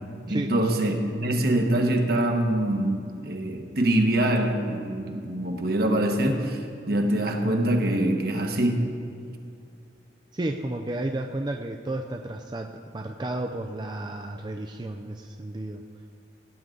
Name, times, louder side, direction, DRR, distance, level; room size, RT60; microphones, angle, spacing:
voice 1, 0.3-6.6 6.9-8.9, right 1 dB, 60° right, 4 dB, 1.2 m, -24 dB
voice 2, 10.3-12.7 12.9-15.8, right 1 dB, 25° right, 3 dB, 0.4 m, -32 dB
17.0 x 9.6 x 3.8 m, 2.5 s
head